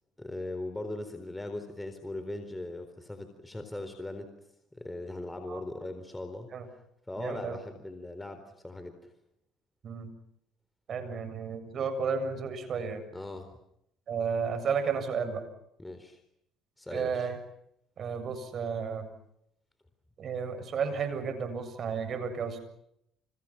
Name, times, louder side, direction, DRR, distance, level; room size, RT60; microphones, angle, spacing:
voice 1, 0.2-4.3 4.7-6.5 7.1-9.1 13.1-13.6 15.8-16.2 16.8-17.3, left 2 dB, 10° left, 8 dB, 4.0 m, -39 dB
voice 2, 7.2-7.6 9.8-10.1 10.9-13.0 14.1-15.4 16.9-17.4 18.0-19.1 20.2-22.6, right 6 dB, 50° right, 10 dB, 7.4 m, -32 dB
30.0 x 29.5 x 6.0 m, 0.77 s
supercardioid pair, 85°, 0 cm